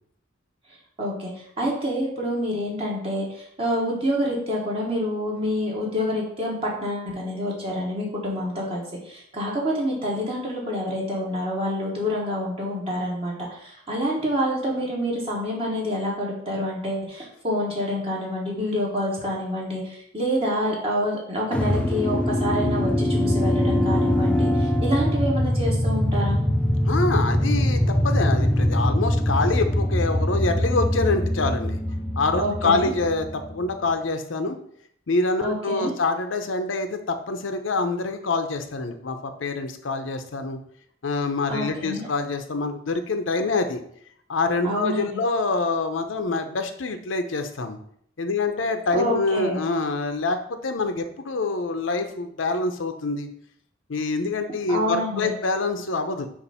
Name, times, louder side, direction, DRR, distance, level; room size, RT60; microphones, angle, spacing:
voice 1, 1.0-26.4 32.4-32.9 35.4-35.9 41.5-42.1 44.6-45.1 48.9-49.6 54.7-55.2, equal, 30° right, -3 dB, 1.3 m, -27 dB
sound 1, 21.5-33.7, left 1 dB, 5° left, 0.3 m, -23 dB
voice 2, 26.9-31.8 32.2-34.6 35.1-40.6 41.0-43.8 44.3-47.8 48.2-53.3 53.9-56.3, left 3 dB, 90° left, 7 dB, 0.7 m, -26 dB
6.8 x 2.6 x 5.5 m, 0.67 s
head